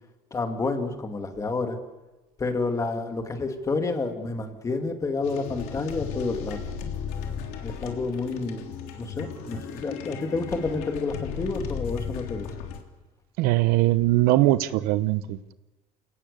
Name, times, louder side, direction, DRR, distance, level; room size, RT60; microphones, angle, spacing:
voice 1, 0.3-1.8 2.4-6.6 7.6-8.7 9.0-12.5, left 3 dB, 20° left, 5 dB, 2.5 m, -29 dB
sound 1, 5.2-12.8, left 7 dB, 85° left, 3.3 m, -35 dB
voice 2, 13.4-15.5, right 16 dB, 90° right, 14 dB, 0.9 m, -21 dB
29.5 x 18.0 x 6.9 m, 1.1 s
cardioid pair, 145°, 15 cm